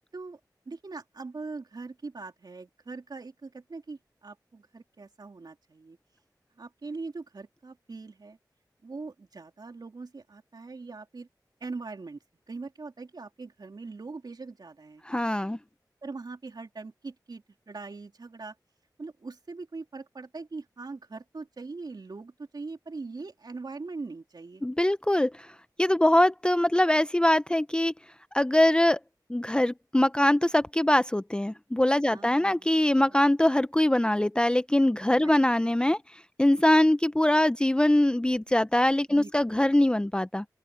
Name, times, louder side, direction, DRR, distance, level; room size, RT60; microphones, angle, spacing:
voice 1, 0.6-6.0 6.6-8.4 8.8-11.3 11.6-12.2 12.5-15.0 16.0-18.5 19.0-24.6 32.1-32.7 35.2-35.4 39.1-39.3 39.7-39.8, right 3 dB, 70° right, 3.3 m, -41 dB
voice 2, 15.1-15.6 24.6-25.5 25.8-27.9 28.3-29.0 29.3-40.4, left 1 dB, 10° left, 0.5 m, -23 dB
open air
wide cardioid pair, 70°, 7 cm